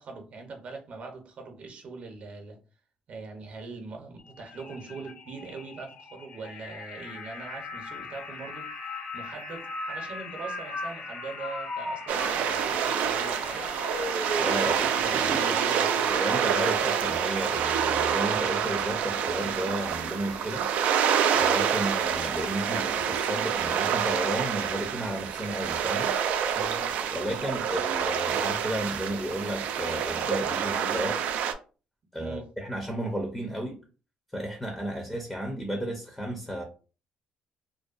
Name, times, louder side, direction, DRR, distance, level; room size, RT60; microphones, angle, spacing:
voice 1, 0.0-2.6 3.1-8.7 9.1-13.7 14.6-16.2 26.5-27.0 32.1-32.5, right 3 dB, 55° right, 0.7 m, -41 dB
sound 1, 4.2-18.8, left 4 dB, 80° left, 0.6 m, -44 dB
sound 2, 7.0-16.6 17.1-17.7 18.6-19.0, left 1 dB, 45° left, 1.2 m, -39 dB
sound 3, 12.1-31.5, right 8 dB, 80° right, 0.3 m, -27 dB
voice 2, 14.3-15.6 16.1-20.7 21.3-26.1 27.1-31.2 32.1-33.8 34.3-36.6, right 1 dB, 10° left, 0.6 m, -33 dB
2.6 x 2.2 x 2.4 m
cardioid pair, 105°, 3 cm